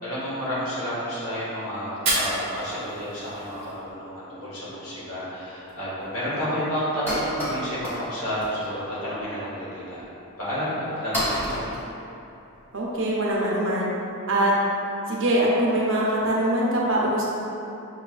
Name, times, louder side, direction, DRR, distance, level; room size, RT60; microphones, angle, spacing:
voice 1, 0.0-10.0 10.4-11.6, equal, 75° left, -9 dB, 1.3 m, -30 dB
Fire, 1.9-3.9, right 1 dB, 30° right, 0.9 m, -30 dB
sound 1, 5.0-5.1 5.7-5.8 6.0-6.2 6.4-6.5 6.8-8.0 8.3-8.7 9.1-9.3 10.0-10.1 10.7-10.8 11.1-12.7, equal, 10° left, 0.8 m, -30 dB
voice 2, 12.7-13.9 14.3-14.5 15.1-17.3, right 1 dB, 55° right, -4 dB, 0.7 m, -23 dB
6.5 x 2.3 x 2.4 m, 2.8 s
head